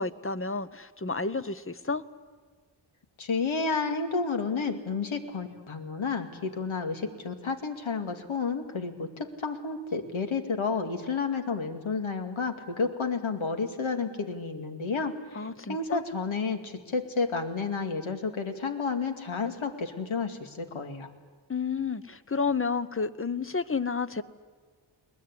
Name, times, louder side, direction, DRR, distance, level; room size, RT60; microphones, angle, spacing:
voice 1, 0.0-2.0 15.3-16.0 21.5-24.2, left 4 dB, 25° left, 13 dB, 0.9 m, -31 dB
voice 2, 3.2-21.1, left 4 dB, 75° left, 6 dB, 2.4 m, -31 dB
21.5 x 20.5 x 9.8 m, 1.5 s
wide cardioid pair, 100°, 48 cm